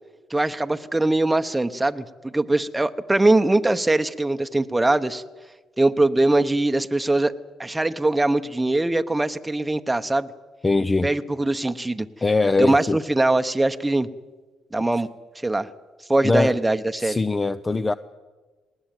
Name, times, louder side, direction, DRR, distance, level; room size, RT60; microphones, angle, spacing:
voice 1, 0.3-5.2 5.8-7.3 7.6-10.3 11.0-12.1 12.6-14.1 14.7-15.1 15.4-15.7 16.1-17.2, right 2 dB, 15° right, 9 dB, 1.0 m, -21 dB
voice 2, 10.6-11.1 12.2-13.0 16.2-16.6 17.0-17.9, left 3 dB, 20° left, 12 dB, 0.7 m, -21 dB
19.5 x 19.0 x 9.1 m, 1.3 s
cardioid pair, 80°, 0 cm